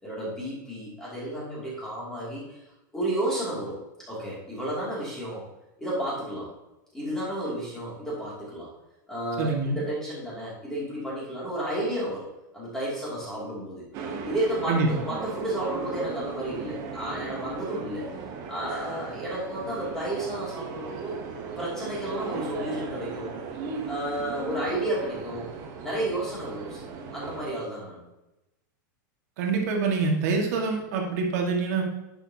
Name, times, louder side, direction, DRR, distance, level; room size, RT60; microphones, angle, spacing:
voice 1, 0.0-2.6 2.9-3.8 4.1-5.5 5.8-6.5 6.9-8.7 9.1-12.3 12.5-13.8 14.2-18.1 18.5-21.2 21.6-23.3 23.9-25.5 25.8-26.9 27.1-28.0, right 1 dB, 5° left, -7 dB, 2.6 m, -32 dB
voice 2, 9.4-9.8 14.7-14.9 29.4-31.8, right 4 dB, 50° right, 1 dB, 1.8 m, -25 dB
sound 1, 13.9-27.5, right 5 dB, 30° right, 1.0 m, -37 dB
10.5 x 6.9 x 2.8 m, 0.96 s
supercardioid pair, 170°, 11 cm